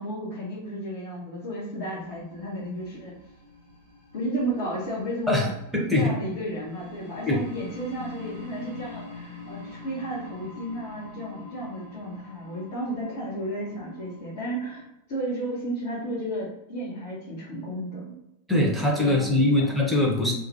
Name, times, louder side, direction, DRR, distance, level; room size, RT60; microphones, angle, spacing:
voice 1, 0.0-3.1 4.1-5.5 5.9-14.8 15.1-18.1 19.0-19.4, right 1 dB, 50° left, -7 dB, 0.7 m, -33 dB
sound 1, 1.9-14.8, left 3 dB, 90° left, 0.9 m, -45 dB
voice 2, 5.7-6.1 7.3-7.4 18.5-20.3, left 1 dB, 5° right, -2 dB, 0.6 m, -22 dB
2.3 x 2.1 x 2.6 m, 0.88 s
figure-of-eight pair, 90°, 0 cm